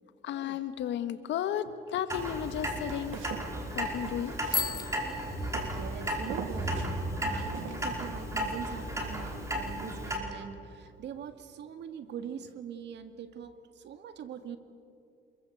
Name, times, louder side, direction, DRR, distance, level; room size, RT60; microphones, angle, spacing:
voice 1, 0.2-3.2 3.7-4.4, left 10 dB, 65° left, 11 dB, 1.6 m, -33 dB
Clock, 2.1-10.2, right 1 dB, 15° right, 4.9 m, -34 dB
Walk footsteps, 2.9-5.1 5.5-5.9 6.3-6.9 7.5-8.1, right 8 dB, 75° right, 2.9 m, -42 dB
Bicycle bell, 4.5-6.2, left 5 dB, 20° left, 0.5 m, -35 dB
voice 2, 5.6-7.0 7.2-14.6, right 7 dB, 60° right, 9 dB, 2.2 m, -42 dB
27.5 x 22.5 x 8.0 m, 2.5 s
cardioid pair, 115°, 21 cm